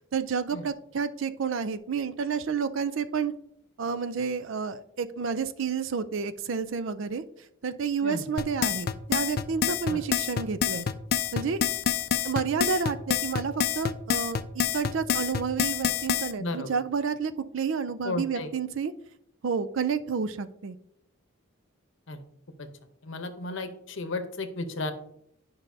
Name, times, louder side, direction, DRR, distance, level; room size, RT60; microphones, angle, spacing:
voice 1, 0.1-3.3 3.8-7.2 7.6-10.9 11.3-11.6 12.2-18.9 19.4-20.8, right 6 dB, 65° right, 13 dB, 0.4 m, -30 dB
sound 1, 8.4-16.3, left 8 dB, 45° left, 0.3 m, -27 dB
voice 2, 16.4-16.8 18.0-18.5 22.1-22.2 22.6-22.7 23.0-24.9, left 2 dB, 60° left, 8 dB, 0.8 m, -34 dB
10.5 x 5.4 x 2.7 m, 0.74 s
head